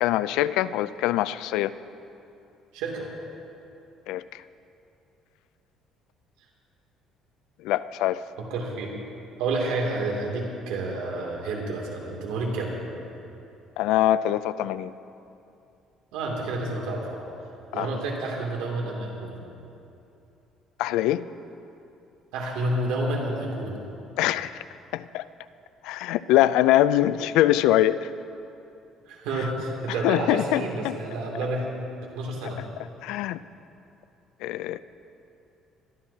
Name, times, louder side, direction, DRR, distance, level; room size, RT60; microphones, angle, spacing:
voice 1, 0.0-1.7 4.1-4.4 7.6-8.2 13.8-14.9 17.7-17.9 20.8-21.3 24.2-24.6 24.9-25.2 25.8-28.1 30.0-31.0 33.0-33.4 34.4-34.8, left 13 dB, 85° left, 15 dB, 0.3 m, -23 dB
voice 2, 2.7-3.1 8.4-8.9 9.4-12.8 16.1-17.2 17.7-19.4 22.3-23.8 29.1-31.7 32.1-32.6, right 2 dB, 90° right, -1 dB, 2.6 m, -29 dB
23.5 x 12.0 x 2.8 m, 2.7 s
cardioid pair, 105°, 0 cm